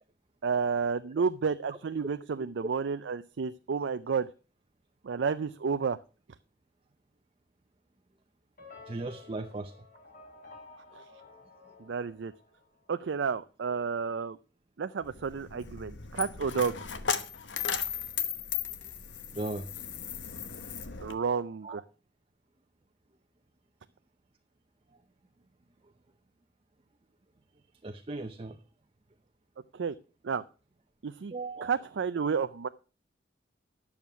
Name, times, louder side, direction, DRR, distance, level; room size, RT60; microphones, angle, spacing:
voice 1, 0.4-4.3 5.0-6.0 10.9-11.0 11.8-12.3 12.9-14.4 14.8-16.8 21.0-21.8 29.7-29.9 30.2-30.4 31.0-31.3 31.6-32.7, right 5 dB, 75° right, 10 dB, 0.5 m, -31 dB
sound 1, 8.6-12.9, left 3 dB, 55° left, 3.5 m, -53 dB
voice 2, 8.9-9.7 19.3-19.7 21.6-21.8 27.8-28.6 31.3-31.7, right 2 dB, 30° right, 5 dB, 0.7 m, -37 dB
Coin (dropping), 15.0-21.1, left 7 dB, 80° left, 1.1 m, -36 dB
11.0 x 7.2 x 6.0 m, 0.36 s
head